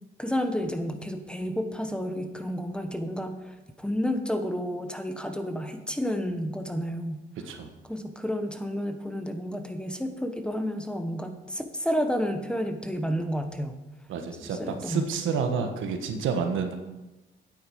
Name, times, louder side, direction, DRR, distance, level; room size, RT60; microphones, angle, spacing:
voice 1, 0.2-7.2 7.9-13.7 14.4-15.1, equal, 5° left, 7 dB, 1.0 m, -31 dB
voice 2, 14.1-16.7, right 6 dB, 80° right, 6 dB, 1.4 m, -29 dB
9.2 x 8.7 x 4.9 m, 1.1 s
cardioid pair, 90°, 20 cm